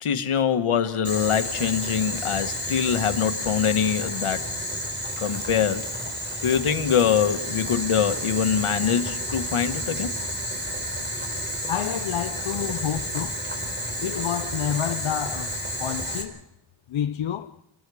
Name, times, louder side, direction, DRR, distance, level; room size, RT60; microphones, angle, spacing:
voice 1, 0.0-4.4 5.2-5.8 6.4-10.1, left 8 dB, 85° left, 1.6 m, -24 dB
Boiling, 1.0-16.2, equal, 20° right, 4.4 m, -31 dB
voice 2, 11.7-13.4 14.0-16.4 16.9-17.5, left 10 dB, 70° left, 0.8 m, -29 dB
30.0 x 20.5 x 4.9 m
wide cardioid pair, 90°, 49 cm